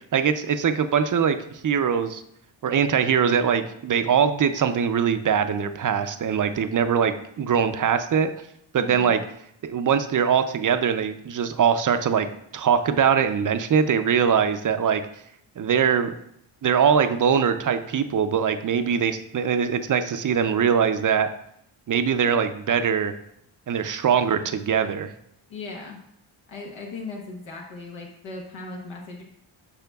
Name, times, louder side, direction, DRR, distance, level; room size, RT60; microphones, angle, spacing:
voice 1, 0.1-2.2 2.6-8.3 8.7-9.2 9.6-12.3 12.5-15.0 15.6-16.1 16.6-21.3 21.9-23.1 23.7-25.1, right 7 dB, 45° right, 9 dB, 0.5 m, -22 dB
voice 2, 8.8-9.1 25.5-26.0 26.5-29.2, left 3 dB, 80° left, -1 dB, 1.1 m, -37 dB
10.5 x 5.6 x 2.3 m, 0.74 s
wide cardioid pair, 135°, 47 cm